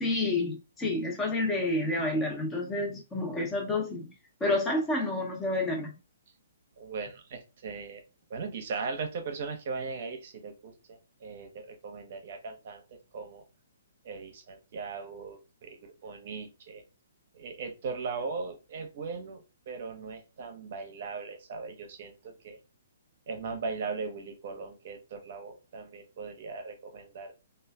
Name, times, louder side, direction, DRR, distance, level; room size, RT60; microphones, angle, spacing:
voice 1, 0.0-4.1 4.4-5.9, left 2 dB, 15° left, 0.6 m, -29 dB
voice 2, 6.8-8.0 8.3-13.4 14.0-16.8 17.3-22.6 23.3-27.3, right 4 dB, 50° right, 0.6 m, -39 dB
3.1 x 2.3 x 2.2 m
figure-of-eight pair, 125°, 0 cm